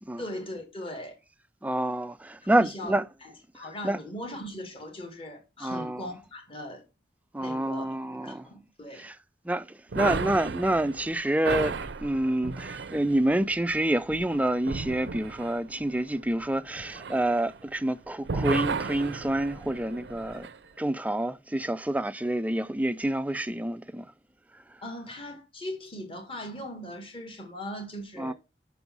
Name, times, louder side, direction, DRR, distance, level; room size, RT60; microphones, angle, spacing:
voice 1, 0.2-1.2 2.5-6.8 7.4-9.1 24.8-28.3, left 1 dB, 30° left, 1.9 m, -39 dB
voice 2, 1.6-3.1 3.8-4.0 5.6-6.1 7.3-8.5 8.9-9.1 9.5-11.7 12.0-20.5 20.8-24.1 28.2-28.3, right 1 dB, 10° right, 0.4 m, -28 dB
sound 1, 9.9-17.9 18.2-20.6, right 4 dB, 85° right, 0.6 m, -35 dB
6.1 x 5.4 x 6.0 m
head